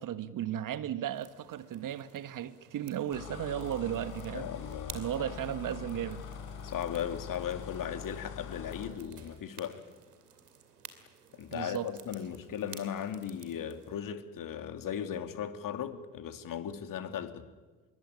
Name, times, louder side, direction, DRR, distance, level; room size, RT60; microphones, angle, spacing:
voice 1, 0.0-4.5 4.9-6.2 11.5-11.9, right 11 dB, 45° right, 1.5 m, -35 dB
sound 1, 1.1-14.0, right 7 dB, 80° right, 2.8 m, -54 dB
sound 2, 3.1-9.0, left 6 dB, 70° left, 4.9 m, -43 dB
voice 2, 4.3-5.3 6.6-9.8 11.3-17.5, left 9 dB, 45° left, 2.9 m, -37 dB
26.0 x 22.5 x 9.8 m
figure-of-eight pair, 60°, 46 cm